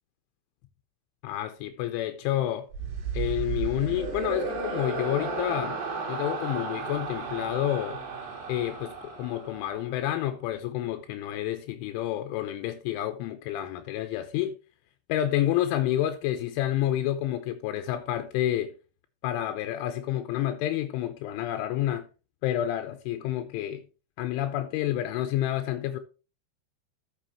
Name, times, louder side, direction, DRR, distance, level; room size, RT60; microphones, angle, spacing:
voice 1, 1.2-2.7 3.1-5.8 6.1-8.0 8.5-14.6 15.1-18.7 19.2-22.1 22.4-23.8 24.2-26.0, left 12 dB, 85° left, 3.1 m, -29 dB
sound 1, 2.7-10.1, right 4 dB, 70° right, 3.5 m, -34 dB
13.0 x 7.2 x 2.9 m
omnidirectional pair, 5.6 m